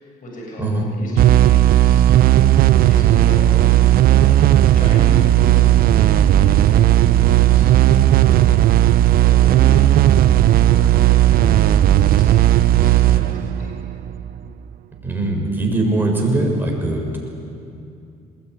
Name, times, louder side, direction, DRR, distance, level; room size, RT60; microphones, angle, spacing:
voice 1, 0.0-2.1 2.8-7.7 8.1-8.5 9.1-10.0 10.5-13.7, equal, 55° left, -2 dB, 7.7 m, -34 dB
sound 1, 1.2-14.5, right 13 dB, 60° right, 0.6 m, -14 dB
voice 2, 15.0-17.2, right 2 dB, 10° right, -1 dB, 6.8 m, -21 dB
23.0 x 20.5 x 9.8 m, 2.5 s
cardioid pair, 110°, 17 cm